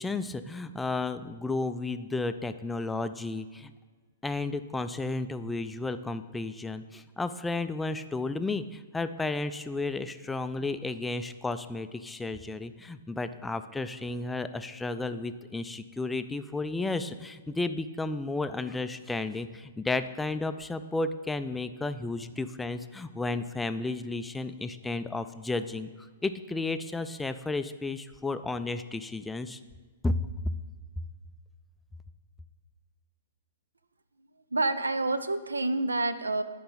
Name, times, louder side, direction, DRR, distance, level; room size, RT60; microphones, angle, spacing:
voice 1, 0.0-3.7 4.2-29.6 30.0-30.2 30.4-30.5, left 3 dB, 5° left, 11 dB, 0.3 m, -33 dB
voice 2, 34.5-36.4, right 2 dB, 75° right, 13 dB, 0.4 m, -28 dB
10.5 x 4.7 x 4.0 m, 1.4 s
figure-of-eight pair, 115°, 0 cm